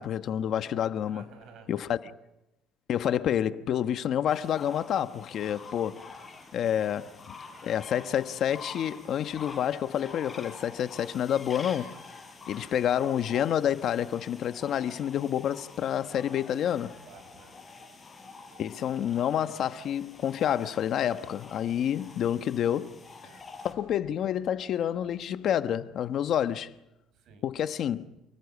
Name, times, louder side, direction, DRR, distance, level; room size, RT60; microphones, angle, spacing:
voice 1, 0.0-1.2 1.7-2.1 2.9-6.0 6.5-7.3 7.6-12.0 12.5-16.9 18.6-22.9 23.6-26.7 27.4-28.0, left 10 dB, 50° left, 1.1 m, -28 dB
voice 2, 1.1-1.7 5.5-5.7 12.4-12.7 17.0-17.6 21.6-21.9 23.2-23.4 27.1-27.4, right 6 dB, 60° right, 5.9 m, -54 dB
sound 1, 4.3-23.7, left 4 dB, 20° left, 5.4 m, -47 dB
29.0 x 20.0 x 8.4 m
cardioid pair, 130°, 0 cm